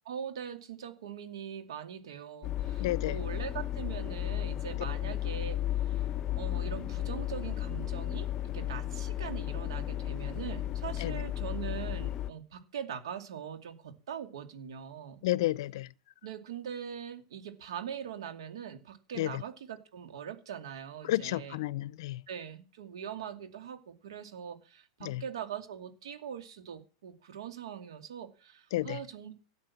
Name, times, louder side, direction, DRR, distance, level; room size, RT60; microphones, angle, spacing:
voice 1, 0.0-6.1 6.3-15.2 16.2-21.6 22.3-29.3, right 8 dB, 85° right, 2.5 m, -42 dB
sound 1, 2.4-12.3, left 12 dB, 25° left, 0.9 m, -34 dB
voice 2, 2.8-3.2 11.0-11.1 15.2-15.9 19.2-19.4 21.0-22.2 25.0-25.2 28.7-29.0, left 16 dB, 60° left, 0.6 m, -31 dB
13.0 x 8.6 x 7.3 m
supercardioid pair, 155°, 3 cm